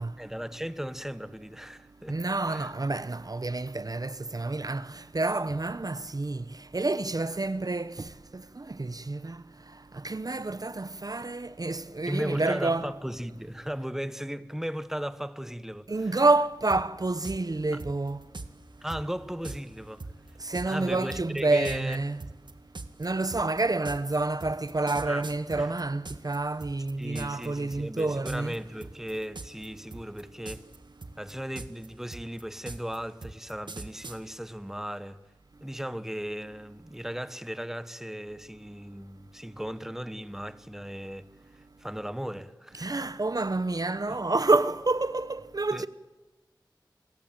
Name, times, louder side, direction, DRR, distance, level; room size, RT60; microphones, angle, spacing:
voice 1, 0.2-2.2 2.5-2.7 12.1-16.2 17.7-17.8 18.8-20.1 20.7-22.0 25.0-25.2 25.5-25.7 27.0-30.6 31.2-35.2 35.6-41.3 41.5-42.9 44.1-44.2 45.7-45.9, equal, 5° right, 1.2 m, -36 dB
voice 2, 2.1-6.4 6.7-9.4 9.9-12.9 15.9-18.2 20.4-22.3 23.0-28.5 42.7-45.9, right 2 dB, 50° right, 0.9 m, -28 dB
sound 1, 16.7-16.8 17.2-17.4 17.8-18.5 18.9-19.0 19.4-19.6 20.0-26.4 26.6-27.5 27.7-28.0 28.3-28.6 28.8-29.7 29.9-30.8 31.0-34.2, right 3 dB, 70° right, 2.0 m, -40 dB
29.5 x 22.0 x 8.9 m
wide cardioid pair, 50°, 8 cm